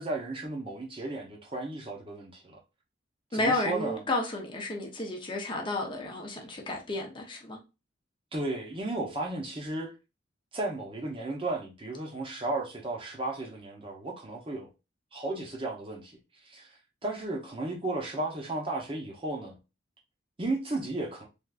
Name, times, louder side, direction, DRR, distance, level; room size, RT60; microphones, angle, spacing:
voice 1, 0.0-2.6 3.3-4.0 8.3-9.9 10.5-14.7 15.1-16.2 16.4-16.7 17.0-19.6 20.4-21.2, right 2 dB, 30° right, 0.7 m, -34 dB
voice 2, 3.3-7.6, left 2 dB, 25° left, 0.6 m, -32 dB
3.4 x 2.5 x 2.3 m
head